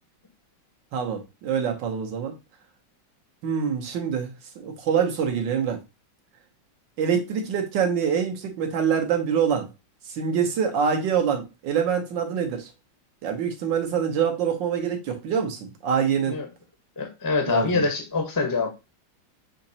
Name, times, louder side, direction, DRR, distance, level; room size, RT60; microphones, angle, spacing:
voice 1, 0.9-2.3 3.4-5.8 7.0-9.7 10.1-12.7 13.2-16.4 17.5-17.8, right 7 dB, 70° right, 1.6 m, -25 dB
voice 2, 17.0-18.7, left 4 dB, 20° left, 0.6 m, -25 dB
6.3 x 2.9 x 2.7 m
omnidirectional pair, 2.1 m